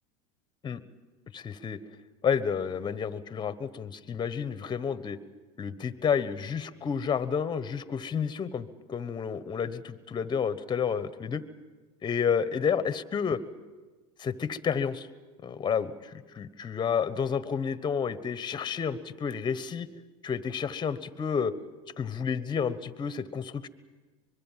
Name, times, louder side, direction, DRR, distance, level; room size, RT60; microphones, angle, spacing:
voice 1, 1.3-1.8 2.2-5.2 5.6-9.8 10.1-11.4 12.0-13.4 14.2-15.1 15.4-19.9 20.2-21.5 22.0-23.7, left 7 dB, 25° left, 14 dB, 1.2 m, -30 dB
24.5 x 22.0 x 7.5 m, 1.3 s
supercardioid pair, 110°, 17 cm